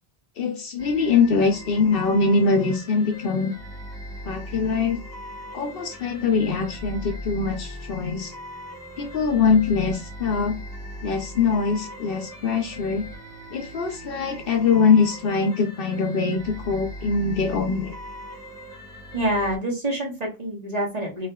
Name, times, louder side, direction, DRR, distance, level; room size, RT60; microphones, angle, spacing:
voice 1, 0.4-3.5 4.2-5.0 5.5-8.3 9.0-10.6 11.0-13.1 13.5-18.0, left 5 dB, 65° left, 5 dB, 0.7 m, -23 dB
sound 1, 0.8-19.6, equal, 15° right, 0.9 m, -39 dB
voice 2, 19.1-21.3, right 1 dB, 40° right, -2 dB, 1.4 m, -26 dB
4.1 x 2.8 x 2.2 m, 0.26 s
omnidirectional pair, 1.1 m